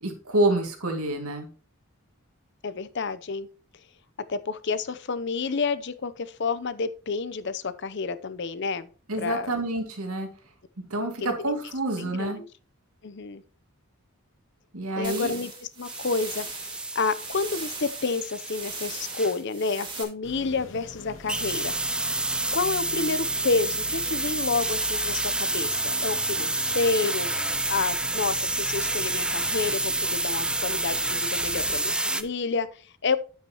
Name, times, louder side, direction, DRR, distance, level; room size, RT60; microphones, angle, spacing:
voice 1, 0.0-1.5 9.1-10.3 10.9-12.4 14.7-15.3, right 1 dB, 80° right, 2.3 m, -27 dB
voice 2, 2.6-3.5 4.3-8.9 9.2-9.5 11.0-11.5 12.0-12.5 13.0-13.4 15.0-16.5 16.9-21.7 22.5-27.3 27.7-33.2, left 4 dB, 55° left, 0.6 m, -29 dB
sound 1, 15.0-20.0, right 4 dB, 20° right, 2.2 m, -39 dB
sound 2, 15.8-19.4 21.3-32.2, right 2 dB, 5° right, 0.4 m, -29 dB
sound 3, 20.2-32.3, left 1 dB, 70° left, 2.1 m, -44 dB
9.5 x 8.0 x 2.9 m
head